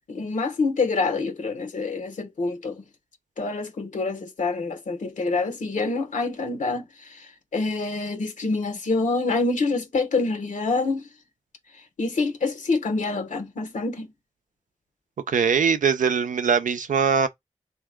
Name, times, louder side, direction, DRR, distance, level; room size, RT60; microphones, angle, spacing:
voice 1, 0.0-2.8 3.4-11.1 12.0-14.1, left 3 dB, 80° left, 0.9 m, -26 dB
voice 2, 15.3-17.3, right 6 dB, 90° right, 0.6 m, -21 dB
3.4 x 2.8 x 3.6 m
wide cardioid pair, 80°, 13 cm